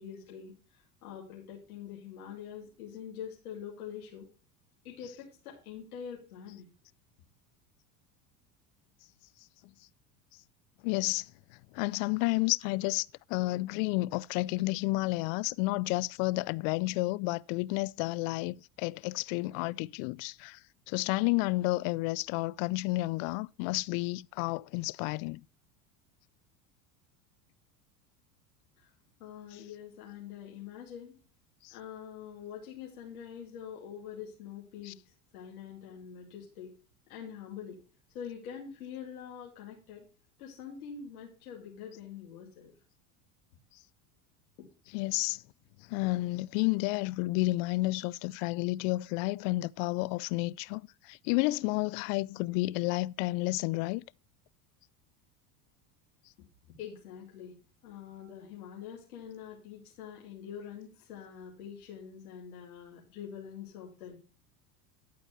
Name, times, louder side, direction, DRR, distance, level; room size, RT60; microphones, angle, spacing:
voice 1, 0.0-4.3 4.8-6.7 28.8-28.9 29.2-31.2 31.7-35.0 35.3-36.7 37.1-37.8 38.1-40.1 40.4-42.7 44.6-44.7 56.7-64.2, left 8 dB, 85° left, 2.5 m, -45 dB
voice 2, 10.8-11.3 11.7-20.6 20.9-25.4 31.6-31.7 34.8-34.9 44.9-45.4 45.9-54.0, left 22 dB, 65° left, 0.5 m, -31 dB
11.5 x 4.4 x 5.6 m
hypercardioid pair, 95°, 43 cm